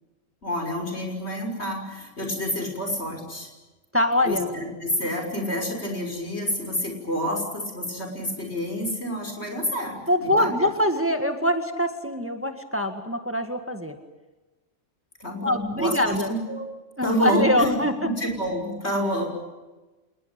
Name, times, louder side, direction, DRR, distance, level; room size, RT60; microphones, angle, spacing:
voice 1, 0.4-3.5 4.2-10.5 15.2-16.6 17.0-19.3, equal, 60° left, 3 dB, 6.3 m, -28 dB
voice 2, 3.9-4.5 10.1-14.0 15.4-16.3 17.0-17.9, left 1 dB, 10° right, 6 dB, 1.8 m, -23 dB
27.5 x 20.5 x 8.9 m, 1.2 s
omnidirectional pair, 1.2 m